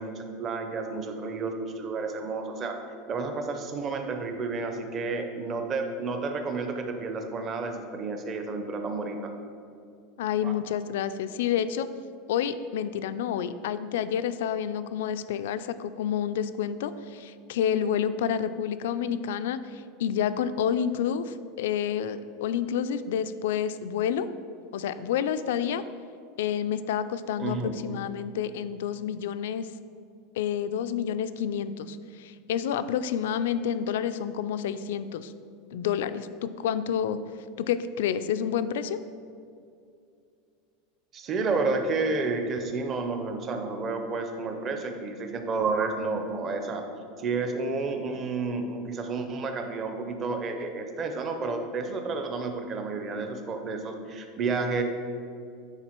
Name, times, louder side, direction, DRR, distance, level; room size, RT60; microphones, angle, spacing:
voice 1, 0.0-2.8 3.1-9.3 10.4-10.5 27.4-27.9 41.1-46.8 47.2-54.8, right 3 dB, 25° right, 5 dB, 0.5 m, -31 dB
voice 2, 10.2-11.9 12.3-24.3 24.7-25.8 26.4-29.7 30.4-35.3 35.7-37.2 37.6-39.0, left 8 dB, 80° left, 12 dB, 0.3 m, -29 dB
9.0 x 3.7 x 4.4 m, 2.4 s
supercardioid pair, 175°, 0 cm